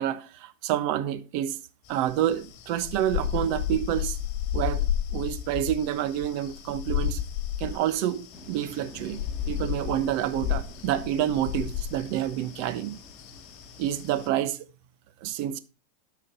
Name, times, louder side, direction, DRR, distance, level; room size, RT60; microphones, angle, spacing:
voice 1, 0.0-1.6 1.9-4.2 4.5-4.8 5.1-7.2 7.6-9.2 9.5-13.0 13.8-14.6 15.2-15.6, right 11 dB, 55° right, 1.1 m, -28 dB
sound 1, 1.8-14.3, left 10 dB, 50° left, 2.2 m, -33 dB
sound 2, 8.3-14.3, equal, 10° left, 2.1 m, -50 dB
12.5 x 4.9 x 5.5 m
supercardioid pair, 135°, 0 cm